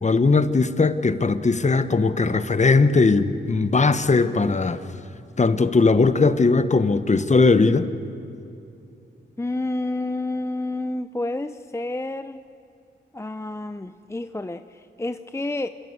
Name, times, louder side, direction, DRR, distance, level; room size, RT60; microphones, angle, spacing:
voice 1, 0.0-4.8 5.4-7.9, left 3 dB, 35° left, 11 dB, 1.2 m, -19 dB
voice 2, 9.4-12.4 13.1-15.7, left 2 dB, 15° left, 10 dB, 0.6 m, -29 dB
27.0 x 16.0 x 8.2 m, 2.7 s
cardioid pair, 65°, 20 cm